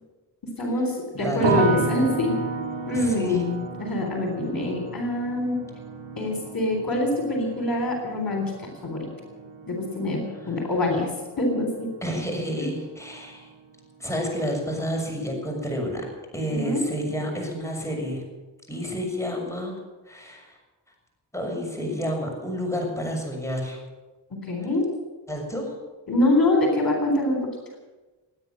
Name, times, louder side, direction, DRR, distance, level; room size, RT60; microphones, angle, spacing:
voice 1, 0.6-2.3 2.9-5.6 6.2-9.1 9.7-11.1 11.4-11.9 12.6-12.7 16.5-16.8 24.4-24.9 26.1-27.4, left 1 dB, 50° left, 2 dB, 3.9 m, -25 dB
voice 2, 1.2-1.6 2.9-3.4 12.0-13.5 14.0-16.0 16.3-18.2 18.7-19.8 20.1-20.6 21.3-23.8 25.3-25.7, equal, 5° left, 1 dB, 6.7 m, -29 dB
sound 1, 1.4-12.5 12.7-13.5, right 4 dB, 85° right, 2.0 m, -33 dB
17.0 x 9.7 x 8.8 m, 1.2 s
supercardioid pair, 45°, 45 cm